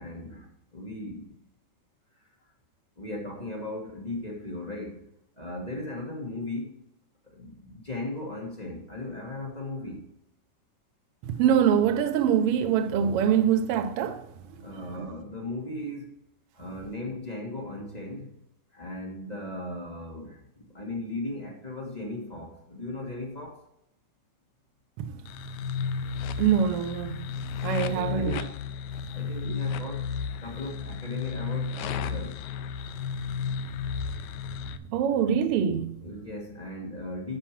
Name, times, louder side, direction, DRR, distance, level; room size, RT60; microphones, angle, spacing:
voice 1, 0.0-1.4 3.0-5.1 5.4-6.8 7.2-10.1 14.6-16.2 16.5-18.4 18.7-23.6 27.8-28.6 29.1-30.1 30.4-32.5 36.0-37.4, left 2 dB, 30° left, 0.7 m, -37 dB
voice 2, 11.2-14.2 15.0-15.1 25.0-25.1 26.4-27.2 27.6-28.4 29.5-29.6 34.9-35.9, right 8 dB, 85° right, 1.3 m, -24 dB
sound 1, 25.3-34.8, left 6 dB, 80° left, 1.9 m, -33 dB
8.8 x 4.6 x 5.9 m
omnidirectional pair, 3.5 m